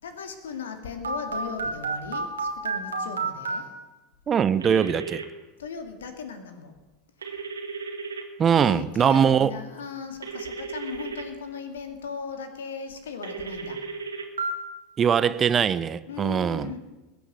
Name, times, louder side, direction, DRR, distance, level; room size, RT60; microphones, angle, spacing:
voice 1, 0.0-3.7 5.6-6.7 8.7-13.8 16.1-16.8, left 6 dB, 75° left, 2.1 m, -37 dB
Telephone, 1.0-3.6 4.6-5.2 7.2-8.2 10.2-11.2 13.2-14.5, right 4 dB, 80° right, 1.9 m, -32 dB
voice 2, 4.3-5.2 8.4-9.5 15.0-16.7, right 7 dB, 30° right, 0.7 m, -21 dB
21.0 x 7.1 x 8.2 m
figure-of-eight pair, 80°, 0 cm